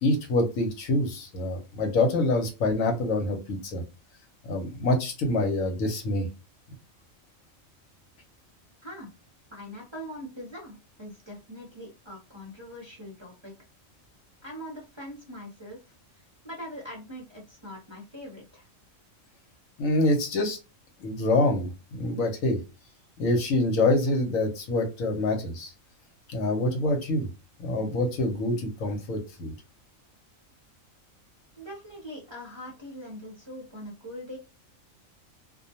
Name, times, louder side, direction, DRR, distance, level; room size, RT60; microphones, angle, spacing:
voice 1, 0.0-3.8 4.4-6.3 19.8-20.6 21.0-22.6 23.2-25.7 26.3-27.3 27.6-29.5, left 2 dB, 80° left, 3 dB, 1.1 m, -26 dB
voice 2, 9.5-13.5 14.4-15.8 16.1-18.7 31.6-34.4, equal, 25° right, -2 dB, 0.6 m, -42 dB
2.4 x 2.2 x 2.7 m, 0.28 s
omnidirectional pair, 1.4 m